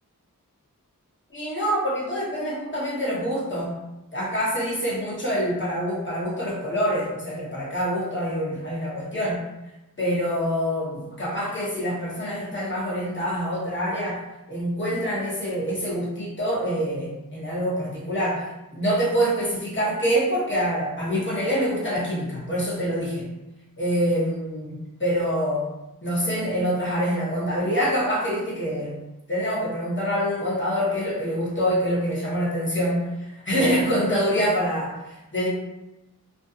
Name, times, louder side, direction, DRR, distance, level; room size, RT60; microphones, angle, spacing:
voice 1, 1.3-3.7 4.1-9.4 10.0-14.2 14.5-18.4 18.7-23.3 23.8-25.7 26.0-28.9 29.3-35.5, equal, 35° left, -6 dB, 0.9 m, -25 dB
2.6 x 2.4 x 2.3 m, 0.98 s
wide cardioid pair, 55°, 33 cm